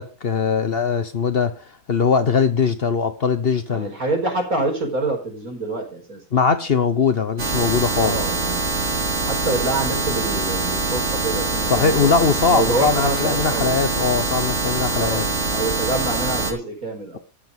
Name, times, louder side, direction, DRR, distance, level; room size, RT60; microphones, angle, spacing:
voice 1, 0.0-3.9 6.3-8.2 11.7-15.3, left 5 dB, 50° left, 1.0 m, -21 dB
voice 2, 3.7-6.2 8.0-8.7 9.3-13.8 14.9-17.2, right 2 dB, 75° right, 5.1 m, -26 dB
sound 1, 7.4-16.5, right 3 dB, 55° right, 2.8 m, -24 dB
13.5 x 8.7 x 5.1 m
omnidirectional pair, 1.5 m